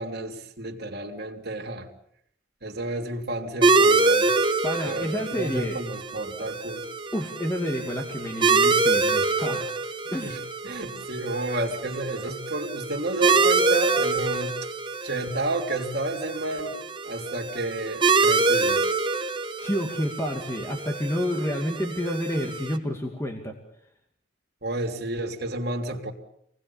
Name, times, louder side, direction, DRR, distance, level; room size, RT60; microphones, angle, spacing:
voice 1, 0.0-1.9 2.6-4.3 4.8-6.9 10.2-10.4 10.6-14.6 15.0-16.8 17.0-18.9 24.6-26.1, right 2 dB, 55° right, 2 dB, 3.4 m, -31 dB
sound 1, 3.6-22.8, right 3 dB, 25° right, 1.3 m, -25 dB
voice 2, 4.6-5.8 7.1-9.7 10.1-10.4 19.6-23.6, equal, 15° left, 2 dB, 2.5 m, -29 dB
27.5 x 20.0 x 7.2 m, 0.70 s
head